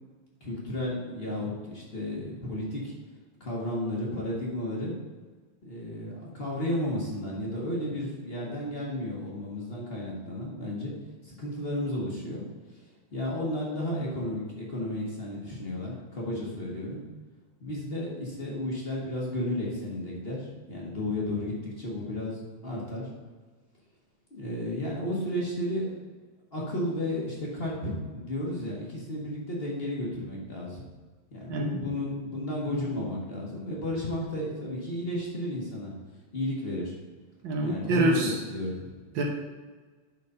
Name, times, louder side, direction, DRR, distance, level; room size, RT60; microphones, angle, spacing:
voice 1, 0.4-2.9 3.4-4.9 5.6-10.9 11.2-12.4 12.7-12.8 13.1-17.0 17.6-23.1 24.3-26.0 26.5-30.8 31.3-35.9 36.3-37.0 37.6-38.2 38.4-39.0, left 1 dB, 40° left, -4 dB, 0.8 m, -33 dB
voice 2, 31.5-31.8 37.4-38.3 39.1-39.2, right 2 dB, 70° right, 0 dB, 1.1 m, -26 dB
10.5 x 4.1 x 5.4 m, 1.4 s
omnidirectional pair, 3.4 m